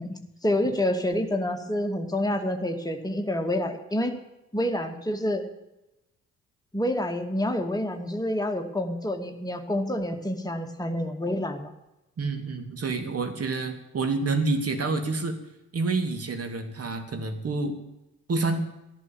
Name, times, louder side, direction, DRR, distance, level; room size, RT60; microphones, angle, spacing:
voice 1, 0.0-4.1 4.5-5.5 6.7-11.7, left 1 dB, 10° left, 4 dB, 2.4 m, -28 dB
voice 2, 12.2-15.4 15.7-17.8 18.3-18.6, right 3 dB, 40° right, 7 dB, 2.7 m, -28 dB
14.5 x 11.0 x 7.2 m, 0.93 s
figure-of-eight pair, 45°, 37 cm